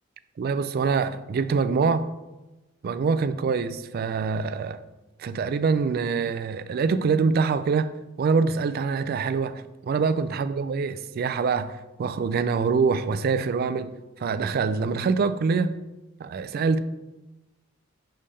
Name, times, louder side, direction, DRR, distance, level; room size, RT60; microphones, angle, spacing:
voice 1, 0.4-2.1 2.8-4.8 5.2-7.9 8.2-13.9 14.2-15.7 16.2-16.8, right 5 dB, 50° right, 0.3 m, -25 dB
5.3 x 3.4 x 5.5 m
head